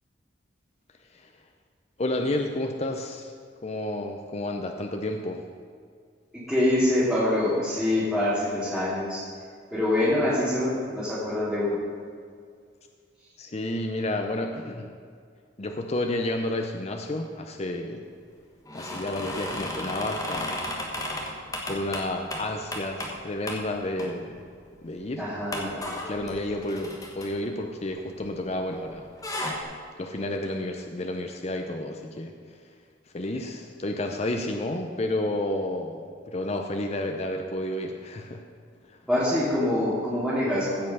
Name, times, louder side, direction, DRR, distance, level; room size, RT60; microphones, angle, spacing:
voice 1, 2.0-3.3 3.6-5.4 13.4-14.9 15.6-18.1 18.7-20.7 21.7-24.4 24.8-25.3 25.9-29.1 30.0-32.6 33.1-38.4 38.9-39.0, left 1 dB, 35° left, 4 dB, 0.6 m, -31 dB
voice 2, 6.3-9.3 9.7-11.8 25.2-25.8 39.1-40.9, left 1 dB, ahead, -13 dB, 2.5 m, -25 dB
sound 1, 18.7-23.2 23.5-23.6 24.0-24.5 24.8-24.9 25.5-28.6 28.9-29.6, left 1 dB, 20° left, 1.4 m, -34 dB
15.5 x 5.5 x 5.6 m, 2.1 s
head